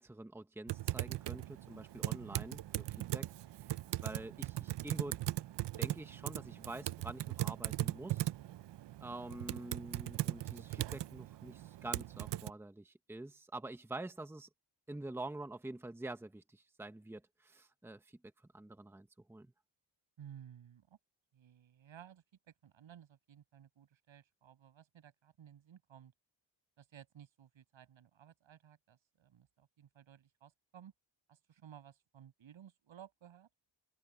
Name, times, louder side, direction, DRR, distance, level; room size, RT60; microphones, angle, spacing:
voice 1, 0.0-3.3 4.0-5.2 5.8-8.3 9.0-14.5 14.9-18.0 18.5-19.5, right 2 dB, 5° right, 1.1 m, -47 dB
Typing, 0.7-12.5, right 14 dB, 65° right, 0.6 m, -39 dB
voice 2, 20.2-21.0 21.3-26.1 26.8-30.9 31.3-33.5, right 9 dB, 85° right, 7.9 m, -57 dB
open air
wide cardioid pair, 170°, 45 cm